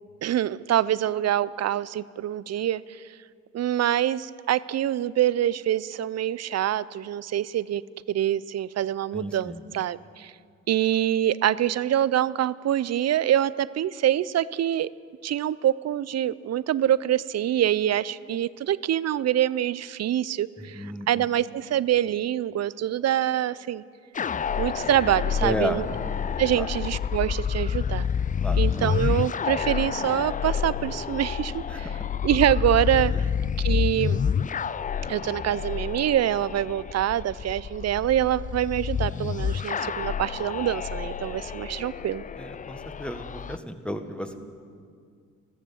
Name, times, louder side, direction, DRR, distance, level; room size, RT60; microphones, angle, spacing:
voice 1, 0.2-3.0 3.5-7.8 8.1-10.3 10.7-14.9 15.2-23.8 24.6-25.8 26.4-28.1 28.6-31.9 32.2-33.1 33.6-34.2 35.1-42.2, right 11 dB, 55° right, 19 dB, 0.5 m, -25 dB
voice 2, 9.1-9.6 20.6-21.3 25.4-25.8 26.6-26.7 28.4-28.9 31.7-32.0 33.1-33.2 42.4-44.4, equal, 5° left, 7 dB, 1.5 m, -33 dB
sound 1, 24.1-43.6, left 7 dB, 25° left, 0.4 m, -29 dB
14.5 x 13.5 x 7.2 m, 2.2 s
supercardioid pair, 60°, 31 cm